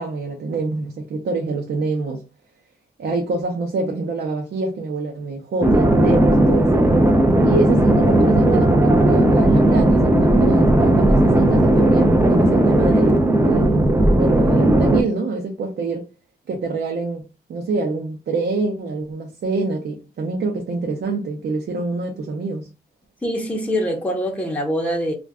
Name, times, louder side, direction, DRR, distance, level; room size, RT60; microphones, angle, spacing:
voice 1, 0.0-2.2 3.0-6.8 7.4-16.0 16.5-17.2 17.5-22.7, right 3 dB, 80° right, 0.6 m, -26 dB
sound 1, 5.6-15.0, right 1 dB, 15° right, 0.4 m, -15 dB
voice 2, 23.2-25.1, equal, 10° left, 0.8 m, -24 dB
2.5 x 2.2 x 3.4 m
wide cardioid pair, 115°, 17 cm